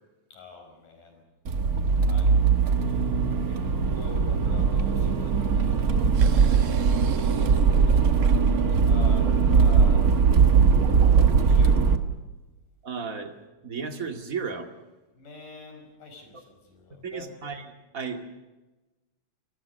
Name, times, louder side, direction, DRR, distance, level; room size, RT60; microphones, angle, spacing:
voice 1, 0.3-1.2 2.0-2.4 2.9-3.0 3.3-7.1 7.7-10.1 11.5-11.9 15.1-17.3, left 3 dB, 85° left, 5 dB, 6.7 m, -45 dB
Accelerating revving vroom, 1.4-12.0, right 5 dB, 50° right, 1.1 m, -20 dB
sound 1, 6.1-11.5, right 7 dB, 80° right, 3.2 m, -43 dB
voice 2, 12.8-13.4 13.6-14.7 16.3-16.4 17.0-18.4, right 5 dB, 30° right, 5 dB, 2.1 m, -34 dB
27.5 x 21.5 x 6.6 m, 1.1 s
omnidirectional pair, 3.7 m